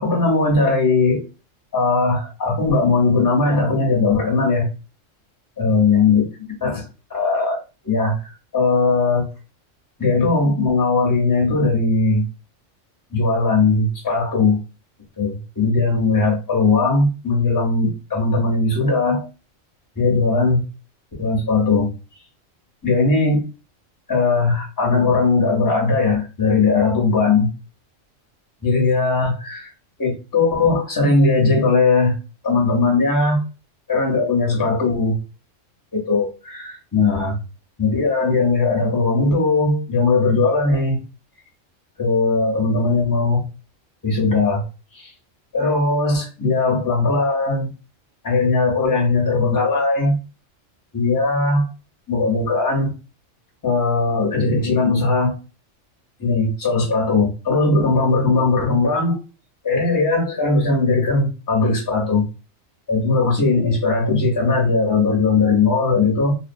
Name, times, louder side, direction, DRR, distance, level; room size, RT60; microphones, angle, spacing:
voice 1, 0.0-1.2 1.7-4.7 5.6-6.2 6.6-7.6 7.8-9.3 10.0-12.2 13.1-14.6 15.2-19.3 20.0-20.6 21.2-21.9 22.8-23.4 24.1-27.5 28.6-29.7 30.0-32.1 32.4-33.4 33.9-35.2 35.9-37.4 37.8-41.0 42.0-43.5 44.0-44.6 44.9-45.1 45.5-47.7 48.2-50.2 50.9-51.7 52.1-52.9 53.6-55.4 56.2-59.2 59.6-62.3 62.9-66.3, left 3 dB, 20° left, -1 dB, 0.7 m, -19 dB
2.7 x 2.1 x 2.5 m, 0.31 s
omnidirectional pair, 1.3 m